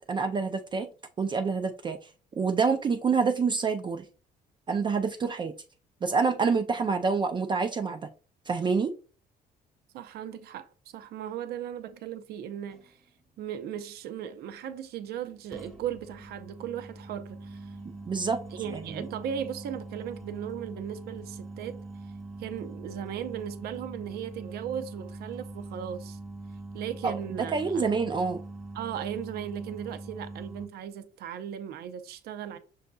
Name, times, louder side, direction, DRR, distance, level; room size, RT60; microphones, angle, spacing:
voice 1, 0.1-0.9 1.2-2.1 2.4-4.1 4.7-5.5 6.0-8.1 8.5-8.9 18.0-18.4 18.7-19.1 27.0-28.4, right 5 dB, 30° right, 0.4 m, -27 dB
voice 2, 9.9-12.9 13.4-17.8 18.5-21.8 22.4-26.2 26.7-27.8 28.7-32.6, right 9 dB, 70° right, 0.6 m, -37 dB
sound 1, 12.7-12.9 15.5-30.7, right 2 dB, ahead, 1.0 m, -43 dB
6.3 x 2.7 x 2.2 m
cardioid pair, 110°, 17 cm